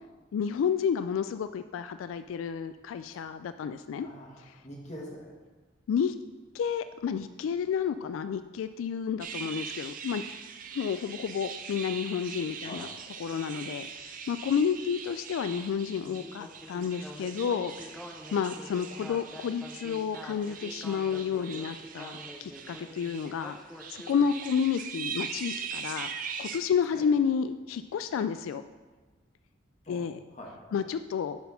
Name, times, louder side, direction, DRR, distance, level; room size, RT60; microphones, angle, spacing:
voice 1, 0.3-4.1 4.4-4.6 5.9-6.1 6.5-10.2 10.7-12.9 13.2-18.0 18.3-23.6 23.9-26.1 26.4-28.6 29.9-30.2 30.7-31.4, left 7 dB, 90° left, 11 dB, 0.3 m, -30 dB
voice 2, 4.0-4.3 4.6-5.3 12.6-12.9 26.9-27.0 29.8-30.0 30.3-30.8, equal, 35° left, -2 dB, 1.7 m, -44 dB
sound 1, 9.2-26.6, right 6 dB, 45° right, 0.5 m, -41 dB
Speech synthesizer, 16.0-24.3, equal, ahead, 0.7 m, -46 dB
9.5 x 4.3 x 5.7 m, 1.3 s
head